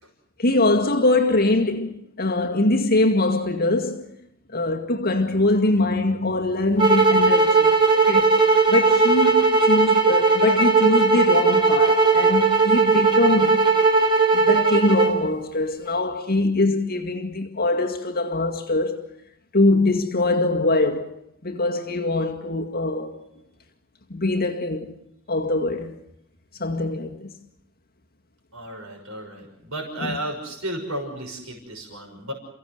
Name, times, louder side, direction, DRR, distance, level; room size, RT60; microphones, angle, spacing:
voice 1, 0.4-4.1 4.5-8.4 8.7-13.6 14.3-19.0 19.5-23.2 24.1-24.9 25.3-25.9 26.6-27.3 30.0-30.2, left 2 dB, 45° left, 2.0 m, -23 dB
sound 1, 6.8-15.2, right 4 dB, 25° right, 4.1 m, -18 dB
voice 2, 28.5-32.3, right 1 dB, 75° right, 6.2 m, -33 dB
30.0 x 16.5 x 7.9 m
head